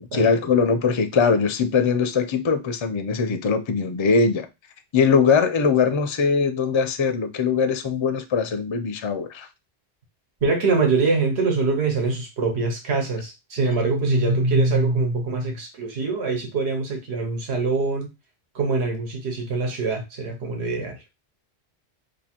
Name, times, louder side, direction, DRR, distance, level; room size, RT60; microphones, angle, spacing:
voice 1, 0.1-4.5 4.9-9.5, left 5 dB, 40° left, 0.4 m, -21 dB
voice 2, 10.4-18.1 18.5-21.0, right 3 dB, 80° right, 1.3 m, -23 dB
2.7 x 2.7 x 4.3 m
omnidirectional pair, 1.1 m